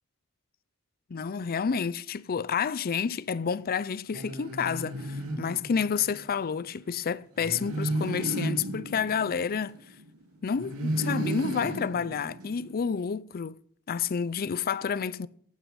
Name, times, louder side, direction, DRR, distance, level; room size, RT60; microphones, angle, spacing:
voice 1, 1.1-9.8 10.4-13.6 13.9-15.3, left 6 dB, 45° left, 0.5 m, -29 dB
sound 1, 4.1-6.2 7.4-10.1 10.6-12.8, right 1 dB, 75° right, 2.8 m, -34 dB
15.5 x 9.2 x 5.4 m
head